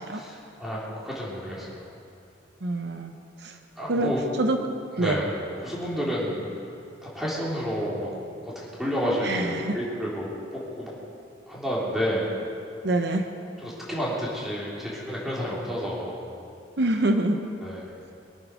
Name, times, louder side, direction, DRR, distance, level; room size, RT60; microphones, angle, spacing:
voice 1, 0.1-1.9 3.8-4.2 5.0-5.3 5.6-6.5 7.0-8.1 8.6-10.3 10.8-10.9 11.5-12.3 13.6-16.3 17.6-17.9, equal, ahead, -6 dB, 3.5 m, -30 dB
voice 2, 2.6-3.1 3.4-3.5 3.9-4.1 4.4-4.6 5.0-5.2 9.2-9.8 12.8-13.3 16.8-17.4, right 2 dB, 65° right, 5 dB, 0.9 m, -25 dB
23.0 x 8.8 x 6.3 m, 2.5 s
head